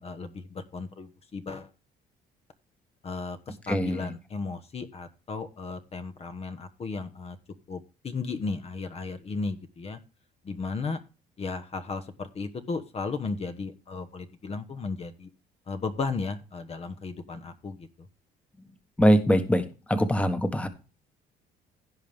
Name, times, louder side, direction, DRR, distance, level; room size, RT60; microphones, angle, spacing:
voice 1, 0.0-1.7 3.0-7.4 7.7-10.0 10.4-11.0 11.4-15.3 15.7-17.9, left 4 dB, 35° left, 9 dB, 1.2 m, -35 dB
voice 2, 3.7-4.1 19.0-20.7, equal, 5° left, 9 dB, 1.3 m, -23 dB
16.5 x 5.6 x 3.4 m, 0.33 s
cardioid pair, 110°, 17 cm